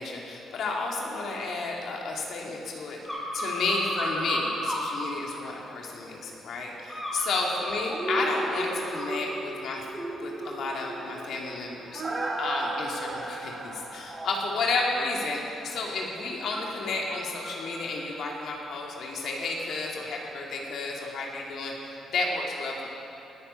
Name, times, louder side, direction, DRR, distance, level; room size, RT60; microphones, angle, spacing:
voice 1, 0.0-3.0 3.3-9.8 10.2-12.0 12.4-21.7 22.1-22.9, left 3 dB, 70° left, -1 dB, 2.5 m, -31 dB
sound 1, 3.0-4.9 5.3-6.0 6.9-9.2 9.7-9.9 10.2-19.6 20.0-20.1, equal, 10° left, 4.3 m, -38 dB
sound 2, 7.9-15.8 16.1-16.2, right 2 dB, 20° right, 1.6 m, -36 dB
sound 3, 11.9-14.2, right 4 dB, 60° right, 1.9 m, -40 dB
19.5 x 9.6 x 5.7 m, 2.9 s
cardioid pair, 90°, 0 cm